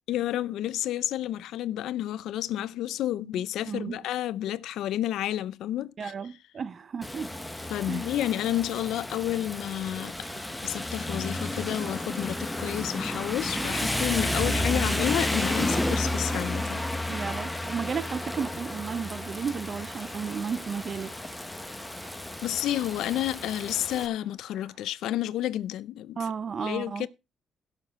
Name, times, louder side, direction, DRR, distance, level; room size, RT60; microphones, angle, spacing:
voice 1, 0.1-6.1 7.7-10.1 10.6-16.8 22.4-26.2 26.6-27.1, left 12 dB, 85° left, 0.5 m, -30 dB
voice 2, 3.7-4.0 6.0-7.4 7.9-8.1 13.5-14.8 17.1-21.1 26.2-27.1, right 6 dB, 45° right, 0.7 m, -34 dB
Rain, 7.0-24.1, left 1 dB, 10° left, 1.1 m, -32 dB
sound 1, 9.7-24.9, right 3 dB, 90° right, 4.6 m, -53 dB
16.5 x 6.7 x 3.6 m
cardioid pair, 90°, 0 cm